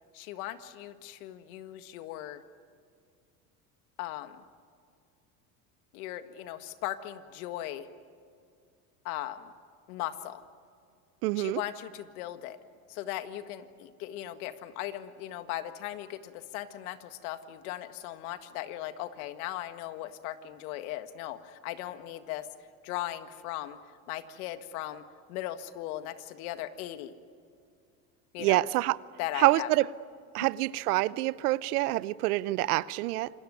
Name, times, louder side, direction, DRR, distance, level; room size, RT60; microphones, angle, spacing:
voice 1, 0.1-2.4 4.0-4.4 5.9-7.9 9.0-9.5 9.9-10.4 11.4-12.6 12.9-22.5 22.8-23.8 24.1-25.0 25.3-27.1 28.3-28.7 29.2-29.7, left 13 dB, 75° left, 10 dB, 1.8 m, -38 dB
voice 2, 11.2-11.6 28.4-29.0 29.4-29.9 30.3-33.3, right 18 dB, 80° right, 19 dB, 0.9 m, -26 dB
27.0 x 20.0 x 9.4 m, 2.3 s
supercardioid pair, 105°, 44 cm